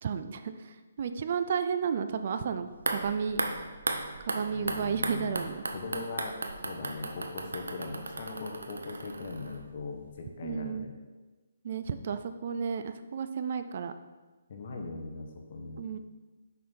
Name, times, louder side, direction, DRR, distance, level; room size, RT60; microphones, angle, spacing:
voice 1, 0.0-3.4 4.2-5.6 10.4-10.9 11.6-13.9 15.8-16.0, right 6 dB, 50° right, 10 dB, 0.4 m, -32 dB
sound 1, 2.7-9.8 10.1-10.2, right 2 dB, 90° right, 0.7 m, -36 dB
voice 2, 4.5-5.4 5.7-6.4 6.6-10.9 14.5-15.8, left 3 dB, 50° left, 2 dB, 1.2 m, -40 dB
6.4 x 5.4 x 4.4 m, 1.3 s
hypercardioid pair, 155°, 0 cm